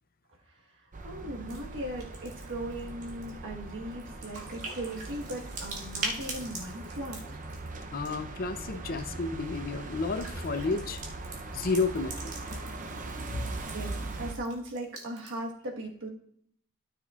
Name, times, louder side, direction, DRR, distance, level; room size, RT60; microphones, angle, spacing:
sound 1, 0.9-14.3, right 2 dB, 35° right, 0.7 m, -40 dB
voice 1, 1.0-7.2 13.7-16.1, right 1 dB, 60° right, 1 dB, 1.4 m, -38 dB
sound 2, 1.5-1.6 1.9-8.3 8.7-9.0 9.9-15.5, right 3 dB, 80° right, 1.8 m, -42 dB
voice 2, 7.9-11.0 11.5-12.4 13.3-13.7, left 3 dB, 40° left, 9 dB, 0.6 m, -31 dB
12.5 x 6.7 x 2.4 m, 0.66 s
head